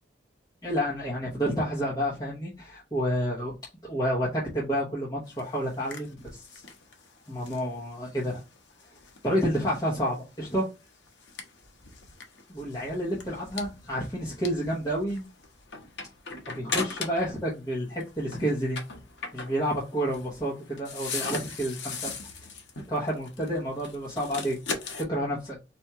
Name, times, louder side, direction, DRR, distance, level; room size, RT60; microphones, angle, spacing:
voice 1, 0.6-3.5 3.8-6.6 7.3-8.4 9.2-10.7 12.5-15.2 16.5-18.8 19.3-22.1 22.9-24.6 25.0-25.6, equal, 20° left, -7 dB, 1.2 m, -29 dB
sound 1, 5.2-17.4 17.7-25.0, left 4 dB, 85° left, 0.9 m, -40 dB
4.3 x 2.7 x 3.5 m, 0.28 s
head